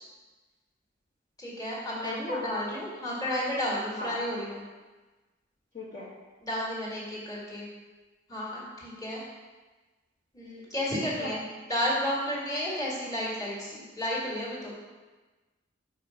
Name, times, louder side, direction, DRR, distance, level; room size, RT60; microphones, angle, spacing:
voice 1, 1.4-4.6 6.4-7.7 8.3-9.3 10.3-11.4 11.7-14.7, equal, 20° left, -5 dB, 1.9 m, -32 dB
voice 2, 2.0-2.4 4.0-4.1 5.7-6.1 11.2-11.3, left 1 dB, 40° left, -8 dB, 1.2 m, -36 dB
5.1 x 5.0 x 5.7 m, 1.2 s
head